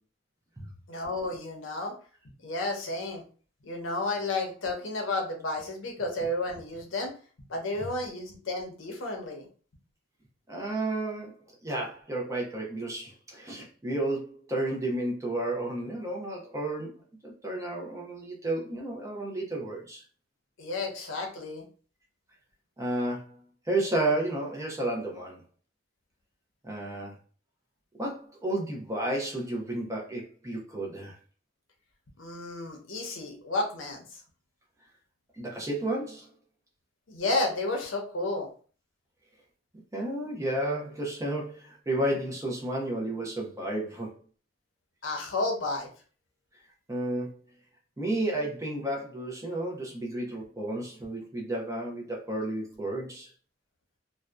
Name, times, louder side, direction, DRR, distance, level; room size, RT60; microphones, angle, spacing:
voice 1, 0.9-1.9 2.4-3.2 3.6-7.1 7.5-9.5 20.6-21.6 32.2-34.0 37.1-38.5 45.0-45.9, left 2 dB, 85° left, 2 dB, 0.7 m, -32 dB
voice 2, 10.5-20.0 22.8-23.4 23.7-25.4 26.6-27.1 28.0-31.2 35.3-36.3 39.9-44.1 46.9-47.4 48.0-53.3, right 1 dB, 15° right, -1 dB, 0.5 m, -32 dB
2.6 x 2.1 x 2.2 m, 0.40 s
head